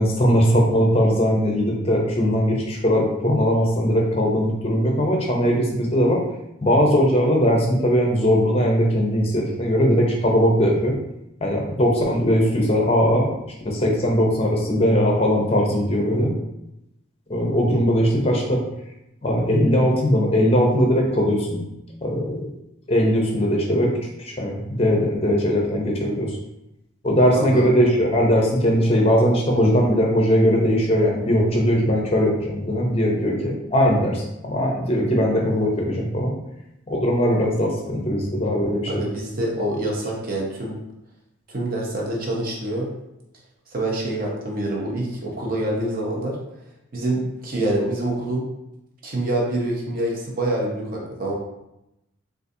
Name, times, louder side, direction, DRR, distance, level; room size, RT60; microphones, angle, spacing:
voice 1, 0.0-6.2 6.6-10.9 11.4-13.3 13.6-16.3 17.3-18.6 19.2-21.6 22.0-22.5 22.9-23.9 24.2-26.3 27.0-36.3 36.9-38.9, equal, 30° left, 0 dB, 0.6 m, -20 dB
voice 2, 27.3-27.7 38.9-40.8 41.5-42.9 43.7-46.4 46.9-48.4 49.0-51.3, right 1 dB, 45° right, -2 dB, 0.7 m, -26 dB
3.9 x 2.4 x 2.6 m, 0.87 s
head